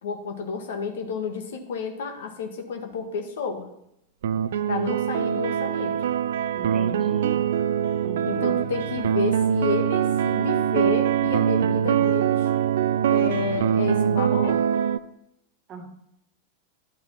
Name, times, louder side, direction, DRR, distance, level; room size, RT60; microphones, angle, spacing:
voice 1, 0.0-3.7 4.7-5.9 8.3-12.5 13.1-14.6, left 5 dB, 60° left, 5 dB, 1.9 m, -30 dB
sound 1, 4.2-15.0, right 9 dB, 60° right, 0.5 m, -23 dB
voice 2, 6.5-7.5 8.0-8.6 15.7-15.9, right 4 dB, 30° right, 8 dB, 1.7 m, -39 dB
11.5 x 8.7 x 5.8 m, 0.79 s
figure-of-eight pair, 90°, 0 cm